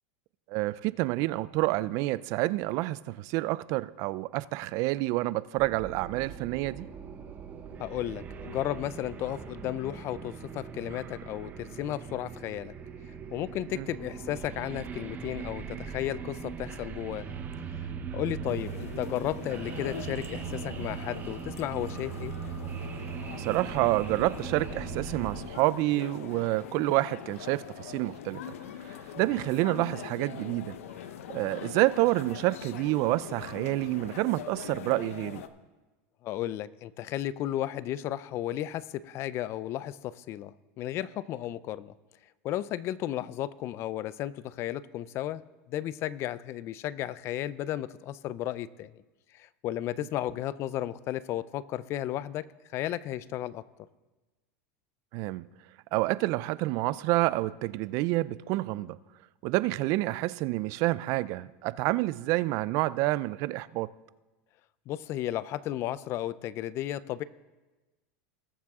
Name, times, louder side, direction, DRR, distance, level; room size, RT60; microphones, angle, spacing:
voice 1, 0.5-6.9 13.8-13.9 23.4-28.4 28.8-30.7 31.3-35.4 55.1-55.4 55.9-59.0 59.4-63.9, right 19 dB, 45° right, 0.4 m, -28 dB
sound 1, 5.6-25.4, right 6 dB, 25° right, 0.9 m, -40 dB
voice 2, 7.8-12.7 13.3-17.4 17.8-17.9 18.1-22.4 36.2-41.9 42.4-45.4 45.7-48.9 49.3-52.5 52.7-53.6 64.9-67.2, left 13 dB, 35° left, 0.4 m, -34 dB
sound 2, 18.5-35.5, left 9 dB, 90° left, 0.7 m, -43 dB
20.0 x 7.3 x 3.6 m
supercardioid pair, 145°, 7 cm